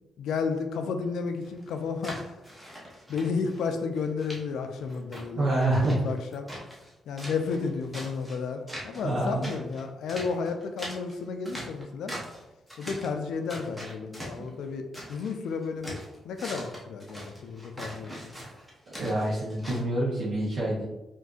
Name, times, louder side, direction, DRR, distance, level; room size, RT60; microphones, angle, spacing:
voice 1, 0.2-2.3 3.1-6.4 7.1-12.1 12.8-18.1, left 5 dB, 80° left, 5 dB, 0.3 m, -32 dB
sound 1, 1.4-3.6 4.0-4.4 4.8-6.9 7.2-8.4 8.7-9.1 9.4-12.4 12.7-13.2 13.5-15.3 15.6-19.8, equal, 5° right, 0.7 m, -41 dB
voice 2, 5.3-6.1 8.9-9.5 18.9-20.8, right 1 dB, 60° right, -6 dB, 0.8 m, -27 dB
3.6 x 2.5 x 2.4 m, 0.99 s
wide cardioid pair, 170°, 0 cm